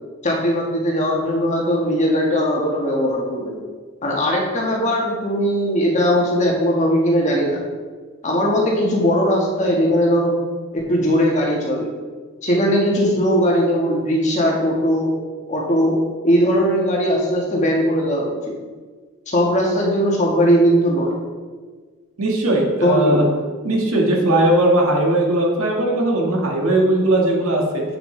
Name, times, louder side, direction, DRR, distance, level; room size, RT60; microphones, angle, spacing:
voice 1, 0.2-3.6 4.0-7.6 8.2-10.3 10.7-11.9 12.4-15.1 15.5-18.5 19.3-21.2 22.8-23.4, equal, 35° left, -2 dB, 1.4 m, -19 dB
voice 2, 22.2-23.3 23.6-27.8, right 1 dB, 85° right, -1 dB, 1.6 m, -18 dB
7.9 x 7.0 x 3.2 m, 1.5 s
head